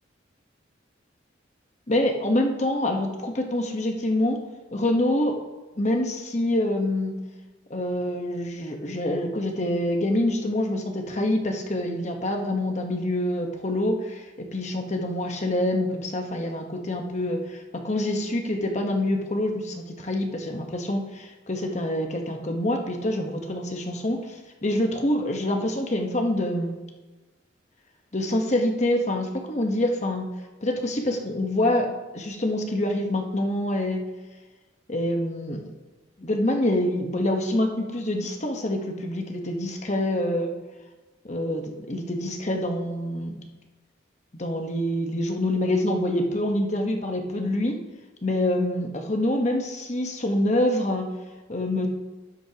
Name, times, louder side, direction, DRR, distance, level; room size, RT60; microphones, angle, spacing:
voice 1, 1.9-4.4 4.7-5.3 5.8-7.1 7.7-26.8 28.1-30.3 30.6-31.9 32.1-34.0 34.9-35.6 36.2-40.5 41.2-43.3 44.3-47.7 48.2-51.0 51.5-51.9, left 1 dB, 40° left, 3 dB, 1.1 m, -26 dB
13.0 x 10.0 x 2.9 m, 1.2 s
head